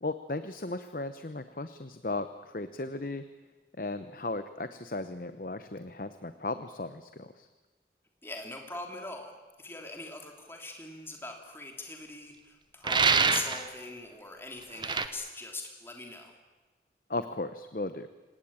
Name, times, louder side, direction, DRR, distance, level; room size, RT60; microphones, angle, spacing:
voice 1, 0.0-3.2 3.8-7.5 17.1-18.1, left 2 dB, 50° left, 10 dB, 0.9 m, -36 dB
voice 2, 8.2-16.3, left 2 dB, 15° left, 2 dB, 3.0 m, -42 dB
sound 1, 12.8-13.7 14.8-15.1, right 5 dB, 25° right, 1.0 m, -25 dB
26.5 x 18.5 x 8.8 m, 1.3 s
head